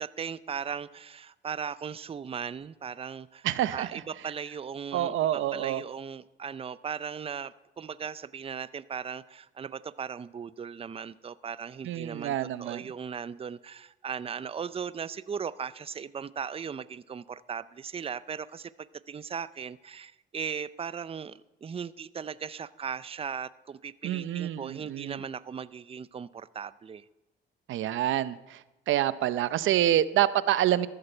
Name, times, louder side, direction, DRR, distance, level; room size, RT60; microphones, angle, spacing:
voice 1, 0.0-27.0, right 7 dB, 30° right, 17 dB, 0.5 m, -38 dB
voice 2, 3.4-4.0 4.9-5.8 11.8-12.8 24.0-25.2 27.7-28.6 28.9-30.9, right 12 dB, 80° right, 15 dB, 0.7 m, -27 dB
14.0 x 13.5 x 4.5 m, 1.0 s
cardioid pair, 90°, 20 cm